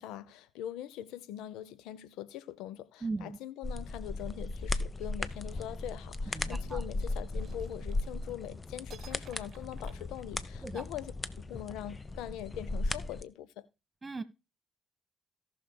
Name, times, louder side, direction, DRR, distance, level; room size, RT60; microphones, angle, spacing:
voice 1, 0.0-13.7, left 11 dB, 75° left, 0.5 m, -42 dB
voice 2, 3.0-3.4 6.3-6.8 10.6-10.8 14.0-14.2, right 3 dB, 30° right, 1.5 m, -38 dB
sound 1, 3.6-13.2, left 2 dB, 35° left, 0.8 m, -37 dB
sound 2, 7.3-8.5 8.9-10.8, right 8 dB, 60° right, 0.8 m, -56 dB
18.0 x 6.3 x 2.2 m
hypercardioid pair, 45°, 0 cm